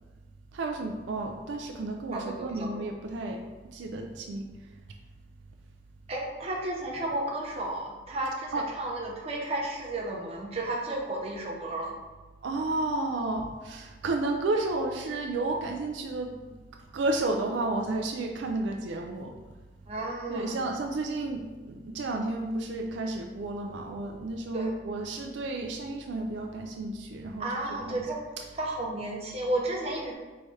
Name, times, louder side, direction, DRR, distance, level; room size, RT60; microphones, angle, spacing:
voice 1, 0.5-3.4 3.7-4.5 8.5-8.7 12.4-16.6 16.9-19.3 20.3-27.5 27.9-28.1, right 2 dB, 75° right, 3 dB, 0.4 m, -32 dB
voice 2, 2.1-2.9 6.1-11.9 19.9-20.6 24.5-24.7 27.4-28.2 28.5-30.1, right 1 dB, 35° right, -2 dB, 0.7 m, -33 dB
4.7 x 3.2 x 2.7 m, 1.2 s
head